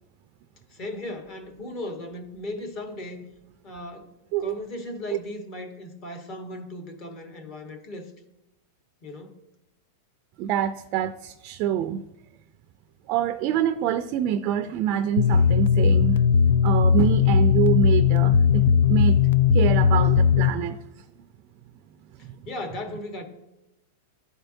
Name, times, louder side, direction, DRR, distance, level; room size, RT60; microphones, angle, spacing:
voice 1, 0.7-3.2 3.6-4.1 4.4-8.1 9.0-9.4 22.4-23.2, left 1 dB, 40° left, 1.2 m, -36 dB
voice 2, 4.3-4.6 5.1-5.2 10.4-12.0 13.1-16.2 16.6-19.2 19.5-20.8 22.2-22.3, right 10 dB, 45° right, 0.4 m, -26 dB
sound 1, 15.2-20.5, left 7 dB, 85° left, 0.3 m, -18 dB
12.0 x 4.4 x 2.6 m
supercardioid pair, 140°, 0 cm